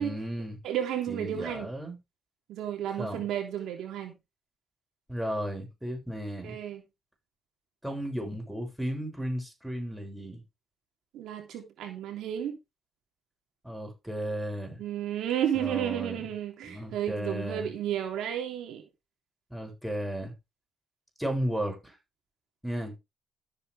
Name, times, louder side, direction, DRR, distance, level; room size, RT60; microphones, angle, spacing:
voice 1, 0.0-0.6 1.1-2.0 3.0-3.2 5.1-6.6 7.8-10.4 13.6-14.8 15.5-16.3 16.6-17.7 19.5-20.3 21.2-22.0 22.6-22.9, equal, 5° right, 7.5 m, -34 dB
voice 2, 0.6-1.7 2.5-4.1 6.4-6.8 11.1-12.6 14.8-18.8, right 10 dB, 85° right, 3.3 m, -32 dB
13.5 x 8.2 x 3.6 m
cardioid pair, 90°, 0 cm